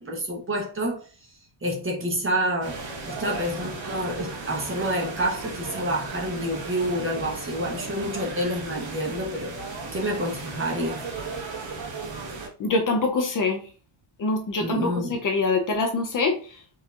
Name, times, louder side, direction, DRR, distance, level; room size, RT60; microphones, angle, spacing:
voice 1, 0.0-1.0 1.6-9.5 9.9-11.0 14.6-15.2, right 1 dB, 25° right, 1.0 m, -28 dB
sound 1, 2.6-12.5, right 3 dB, 70° right, 1.3 m, -36 dB
voice 2, 12.6-13.6 14.2-14.8 15.1-16.4, left 3 dB, 40° left, 0.6 m, -24 dB
5.6 x 2.8 x 2.4 m
cardioid pair, 170°, 48 cm